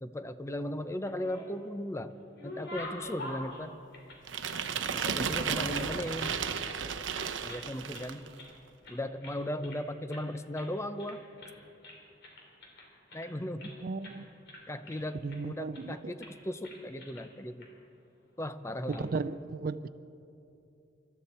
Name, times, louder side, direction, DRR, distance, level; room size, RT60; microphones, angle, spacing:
voice 1, 0.0-2.1 2.4-3.8 4.9-6.4 7.4-8.3 8.9-11.2 13.1-13.7 14.7-17.7 18.4-19.2, left 1 dB, 15° left, 11 dB, 0.6 m, -37 dB
sound 1, 0.9-1.7 2.1-5.0 5.3-6.4 6.6-6.8 7.1-7.7 7.9-8.6 8.8-9.8 10.1-10.3 10.5-10.7 11.0-11.6 11.8-13.7 14.0-14.2 14.5-15.4 15.7-15.9 16.2-16.4 16.6-17.3 17.6-17.7 18.7-19.0, left 1 dB, 65° left, 3.2 m, -47 dB
sound 2, 4.3-8.3, right 6 dB, 75° right, 0.8 m, -33 dB
voice 2, 13.8-14.3 15.2-16.1 18.9-19.9, right 4 dB, 50° right, 14 dB, 0.4 m, -35 dB
25.0 x 13.5 x 4.3 m, 2.7 s
head